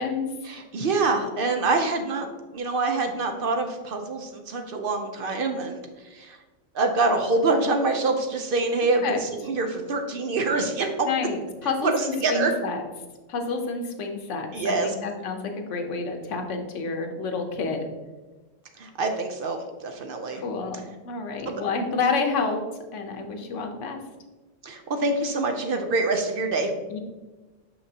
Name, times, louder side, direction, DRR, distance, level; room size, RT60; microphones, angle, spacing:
voice 1, 0.5-2.3 2.5-5.8 6.1-6.4 6.7-11.1 11.8-12.5 14.5-14.9 18.8-20.4 21.5-21.6 24.6-26.7, right 3 dB, 55° right, 5 dB, 0.7 m, -25 dB
voice 2, 11.0-12.8 13.3-17.9 20.4-22.6 22.9-24.0 26.9-27.0, left 4 dB, 90° left, 4 dB, 1.2 m, -29 dB
6.0 x 5.7 x 2.8 m, 1.2 s
omnidirectional pair, 1.2 m